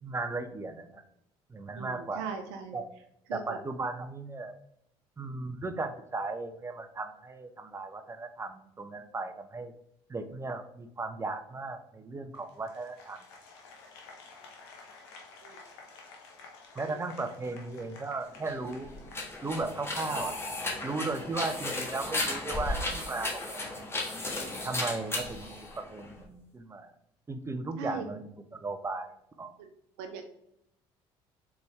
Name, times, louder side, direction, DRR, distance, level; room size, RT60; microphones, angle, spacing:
voice 1, 0.0-1.0 1.5-2.3 2.7-2.9 3.3-4.5 5.2-9.7 10.1-13.2 16.8-18.9 19.4-20.3 20.8-23.9 24.6-26.9 27.3-29.1 29.4-29.5, right 3 dB, 20° right, 9 dB, 0.6 m, -36 dB
voice 2, 1.8-2.8 3.3-3.6 15.4-15.6 16.8-17.1 27.8-28.1 29.6-29.7 30.0-30.2, right 6 dB, 90° right, 5 dB, 0.5 m, -39 dB
Applause, 12.3-19.9, left 4 dB, 90° left, 0.8 m, -52 dB
sound 1, 18.4-26.2, left 2 dB, 20° left, 1.3 m, -35 dB
4.1 x 3.5 x 3.1 m, 0.76 s
supercardioid pair, 75°, 13 cm